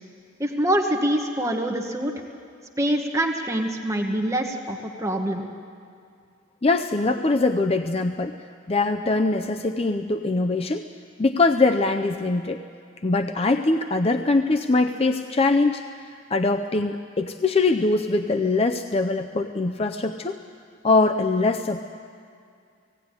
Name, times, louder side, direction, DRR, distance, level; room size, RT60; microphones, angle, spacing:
voice 1, 0.4-2.1 2.8-5.5, right 1 dB, 15° right, 2 dB, 1.2 m, -25 dB
voice 2, 6.6-8.3 8.7-10.8 11.2-12.6 13.0-15.8 16.3-20.4 20.8-21.8, left 3 dB, 30° left, 7 dB, 0.5 m, -22 dB
17.5 x 17.0 x 9.7 m, 2.3 s
head